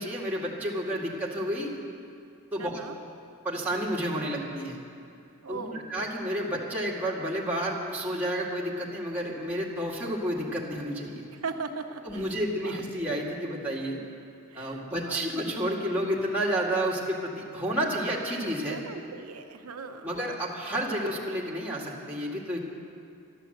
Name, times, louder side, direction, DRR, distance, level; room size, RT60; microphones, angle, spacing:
voice 1, 0.0-1.8 2.5-2.7 3.4-4.8 5.5-5.6 5.9-11.2 12.0-14.0 14.5-18.8 20.0-22.6, equal, 10° right, -5 dB, 2.1 m, -30 dB
voice 2, 2.6-3.0 5.4-5.9 11.3-12.4 12.6-12.8 14.5-15.3 18.6-20.2, right 4 dB, 90° right, 4 dB, 0.9 m, -39 dB
13.0 x 12.0 x 7.8 m, 2.5 s
head